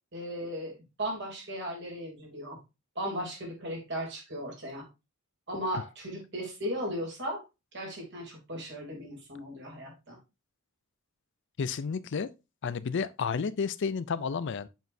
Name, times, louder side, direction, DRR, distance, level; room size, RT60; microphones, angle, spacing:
voice 1, 0.1-2.6 2.9-4.9 5.5-7.4 7.7-10.2, equal, 55° right, 3.1 m, -36 dB
voice 2, 11.6-12.3 12.6-14.7, left 5 dB, 55° left, 0.4 m, -31 dB
7.2 x 5.9 x 2.7 m
head